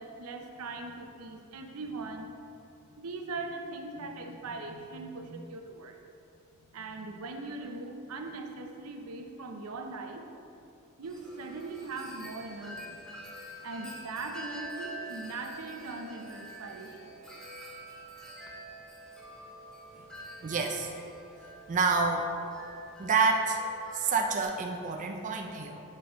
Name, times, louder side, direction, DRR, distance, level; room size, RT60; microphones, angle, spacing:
voice 1, 0.0-2.3 2.9-6.0 6.6-10.2 11.0-13.0 13.6-17.1, right 3 dB, 85° right, 4 dB, 0.6 m, -40 dB
Wind chime, 11.0-24.4, right 1 dB, 5° left, 0.7 m, -46 dB
voice 2, 20.4-20.9 21.7-22.3 23.0-23.6 23.9-25.8, right 4 dB, 35° right, 2 dB, 0.4 m, -28 dB
8.4 x 4.7 x 3.1 m, 2.7 s
head